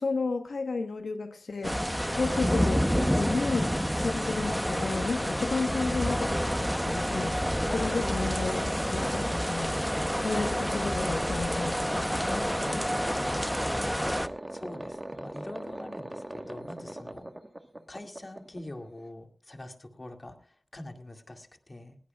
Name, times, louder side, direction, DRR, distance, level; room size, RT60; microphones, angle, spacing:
voice 1, 0.0-9.7 10.2-12.9, left 3 dB, 90° left, 1.2 m, -32 dB
sound 1, 1.6-14.3, equal, ahead, 0.7 m, -29 dB
sound 2, 6.5-19.1, right 1 dB, 25° right, 1.4 m, -40 dB
voice 2, 10.0-10.9 13.2-17.3 17.9-22.0, left 1 dB, 35° left, 2.2 m, -44 dB
20.0 x 18.0 x 2.4 m
wide cardioid pair, 65°, 0 cm